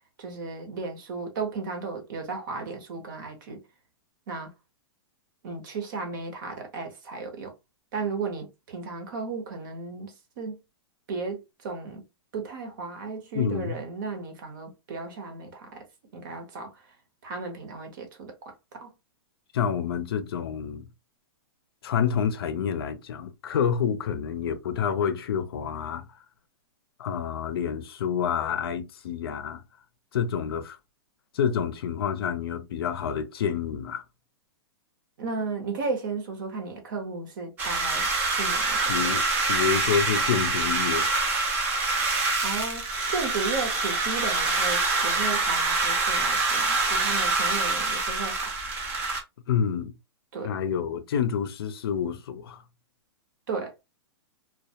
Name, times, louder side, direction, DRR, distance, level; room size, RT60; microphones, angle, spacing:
voice 1, 0.2-3.6 4.3-4.5 5.4-7.5 7.9-10.6 11.1-12.0 12.3-15.8 16.1-16.8 17.2-18.9 35.2-38.1 38.4-39.1 39.7-39.8 42.4-48.5 50.3-50.5 53.5-53.7, right 4 dB, 50° right, 0.8 m, -34 dB
voice 2, 13.3-13.8 19.5-20.9 21.8-26.0 27.0-29.6 30.1-30.8 31.3-34.0 38.9-41.1 49.5-49.9 50.4-52.6, left 7 dB, 65° left, 0.5 m, -28 dB
sound 1, 37.6-49.2, right 3 dB, 15° right, 0.3 m, -25 dB
2.2 x 2.1 x 2.7 m
hypercardioid pair, 165°, 14 cm